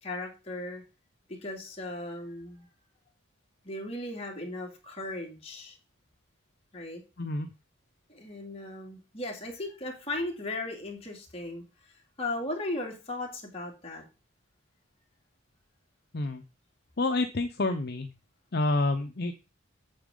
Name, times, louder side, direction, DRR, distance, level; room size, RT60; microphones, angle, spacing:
voice 1, 0.0-0.8 1.3-2.7 3.6-5.7 6.7-7.0 8.1-11.6 12.2-14.0, left 2 dB, 30° left, 0 dB, 2.5 m, -37 dB
voice 2, 7.2-7.5 16.1-16.4 17.0-18.1 18.5-19.3, left 2 dB, 50° left, 6 dB, 0.7 m, -28 dB
8.7 x 7.1 x 3.7 m, 0.30 s
head